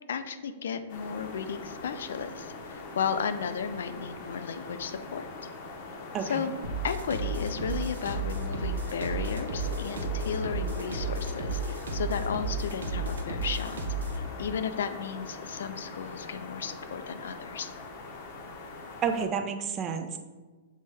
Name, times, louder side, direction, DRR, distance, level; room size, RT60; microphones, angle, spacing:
voice 1, 0.1-5.3 6.2-6.5 6.8-13.8 14.1-17.7, left 6 dB, 80° left, 10 dB, 0.3 m, -34 dB
sound 1, 0.9-19.3, left 3 dB, 45° left, 0.7 m, -41 dB
sound 2, 6.6-14.3, right 3 dB, 90° right, 0.6 m, -33 dB
voice 2, 19.0-20.2, right 7 dB, 25° right, 6 dB, 0.4 m, -30 dB
6.2 x 2.2 x 3.2 m, 1.3 s
hypercardioid pair, 140°, 0 cm